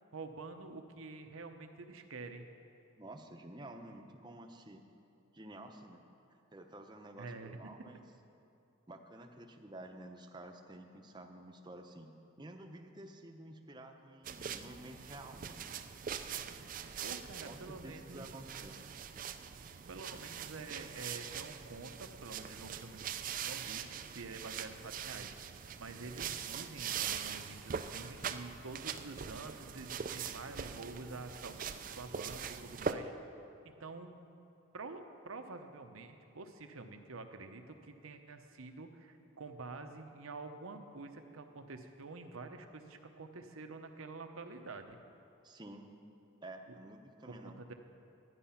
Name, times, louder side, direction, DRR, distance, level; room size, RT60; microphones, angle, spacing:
voice 1, 0.1-2.4 7.2-7.7 17.0-18.3 19.9-23.1 23.4-25.4 25.8-31.6 32.0-33.1 33.6-34.2 34.7-45.0 46.7-46.8 47.3-47.7, right 3 dB, 85° right, 6 dB, 0.9 m, -48 dB
voice 2, 3.0-4.8 5.3-6.0 6.3-8.0 8.9-12.1 12.4-15.7 17.5-18.8 45.4-45.9 46.4-47.5, right 1 dB, 20° right, 4 dB, 0.8 m, -51 dB
sound 1, 14.2-32.9, right 7 dB, 40° right, 0.4 m, -42 dB
12.5 x 9.8 x 5.7 m, 2.7 s
head